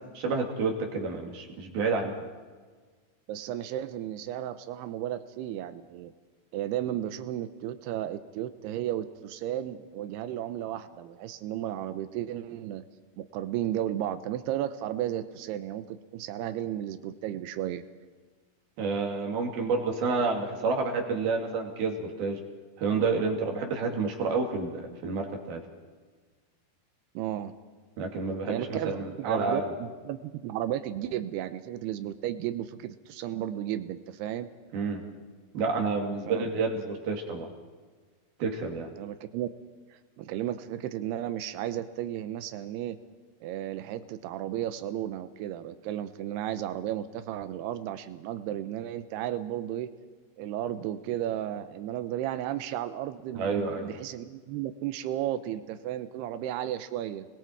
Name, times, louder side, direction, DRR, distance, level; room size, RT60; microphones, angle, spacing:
voice 1, 0.1-2.2 18.8-22.4 22.8-25.6 28.0-29.7 34.7-35.0 35.5-37.5 38.4-38.9 53.3-53.9, right 4 dB, 70° right, 2 dB, 4.4 m, -29 dB
voice 2, 3.3-6.1 6.5-12.8 13.2-17.8 27.2-27.5 28.5-34.5 36.2-36.4 39.0-39.5 39.9-43.0 43.4-49.9 50.4-57.3, right 12 dB, 85° right, 11 dB, 2.9 m, -34 dB
29.5 x 21.0 x 4.7 m, 1.4 s
omnidirectional pair, 4.6 m